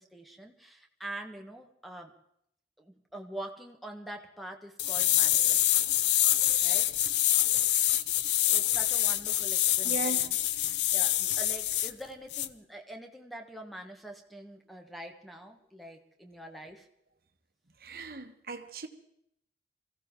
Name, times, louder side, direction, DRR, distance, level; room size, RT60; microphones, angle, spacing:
voice 1, 0.0-2.1 2.8-5.9 6.6-7.0 8.2-10.4 10.7-16.9, right 1 dB, ahead, 1.4 m, -45 dB
sound 1, 4.8-11.9 12.3-12.5, left 13 dB, 80° left, 0.6 m, -26 dB
voice 2, 9.8-10.4 17.8-18.9, right 3 dB, 55° right, 1.3 m, -37 dB
24.0 x 16.0 x 3.8 m
head